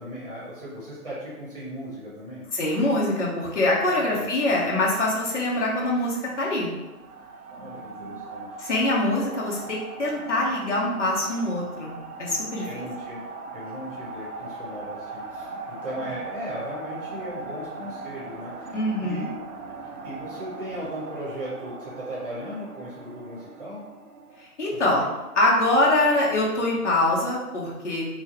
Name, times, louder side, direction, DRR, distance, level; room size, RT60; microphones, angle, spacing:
voice 1, 0.0-2.5 3.9-4.3 7.5-8.5 12.6-13.2 13.5-19.3 20.0-23.8 24.8-25.1, equal, 30° right, -7 dB, 0.9 m, -37 dB
voice 2, 2.5-6.7 8.6-11.9 12.2-12.7 18.7-19.3 24.4-25.0 25.3-28.0, left 1 dB, 50° left, -4 dB, 1.0 m, -24 dB
sound 1, 6.8-24.5, right 3 dB, 70° right, 0.6 m, -39 dB
4.3 x 2.2 x 2.9 m, 1.1 s
hypercardioid pair, 165°, 45 cm